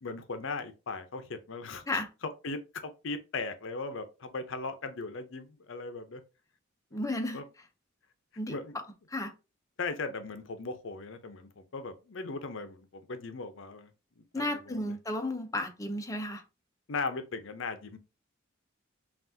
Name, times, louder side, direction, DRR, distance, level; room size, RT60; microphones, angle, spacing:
voice 1, 0.0-2.0 2.4-6.2 6.9-7.0 7.3-7.4 8.5-8.8 9.8-14.9 16.9-18.0, left 3 dB, 65° left, 0.6 m, -38 dB
voice 2, 6.9-7.4 8.4-8.6 9.1-9.3 14.3-16.4, left 1 dB, 15° left, 0.6 m, -33 dB
5.8 x 2.4 x 2.7 m
head